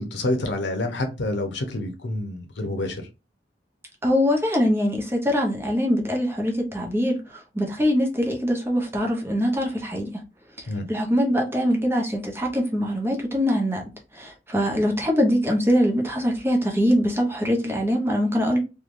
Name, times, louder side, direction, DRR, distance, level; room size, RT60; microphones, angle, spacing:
voice 1, 0.0-3.1 10.7-10.9, left 1 dB, 80° left, 0.8 m, -28 dB
voice 2, 4.0-10.1 10.9-13.8 14.1-18.6, equal, 15° right, 0.6 m, -23 dB
3.2 x 2.3 x 2.5 m
head